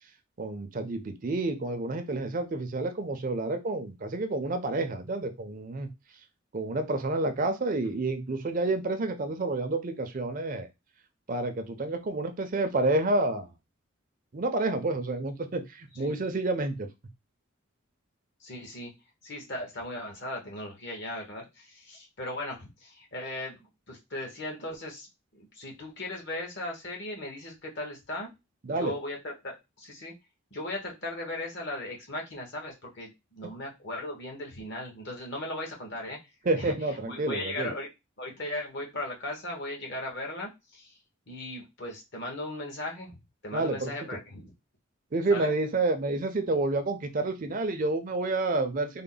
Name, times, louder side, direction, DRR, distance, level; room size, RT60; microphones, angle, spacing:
voice 1, 0.4-5.9 6.5-10.7 11.3-13.5 14.3-16.9 28.7-28.9 36.5-37.7 43.5-43.9 45.1-49.0, right 2 dB, 40° right, 7 dB, 0.5 m, -29 dB
voice 2, 18.4-18.9 19.2-23.6 23.9-25.1 25.3-28.3 28.7-30.1 30.5-36.2 36.5-37.9 38.2-41.0 41.3-43.2 43.4-44.5 45.3-45.5, left 1 dB, 55° left, 1 dB, 1.2 m, -37 dB
3.7 x 2.1 x 3.8 m, 0.24 s
head